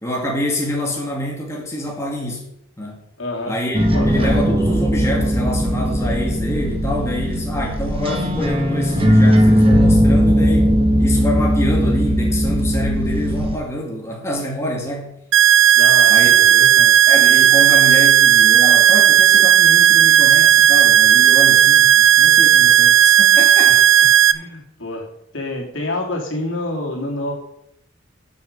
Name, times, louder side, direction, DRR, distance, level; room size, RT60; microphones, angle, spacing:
voice 1, 0.0-2.4 2.8-3.0 3.5-15.1 16.1-16.3 17.1-23.7, left 1 dB, 15° left, -1 dB, 2.2 m, -26 dB
voice 2, 3.2-3.5 3.9-4.3 15.7-17.0 23.7-23.8 24.3-25.1 25.3-27.3, left 2 dB, 65° left, 0 dB, 3.1 m, -27 dB
sound 1, 3.7-13.6, equal, 25° right, 1.2 m, -17 dB
sound 2, 15.3-24.3, right 10 dB, 60° right, 0.5 m, -12 dB
12.0 x 7.0 x 5.5 m, 0.75 s
head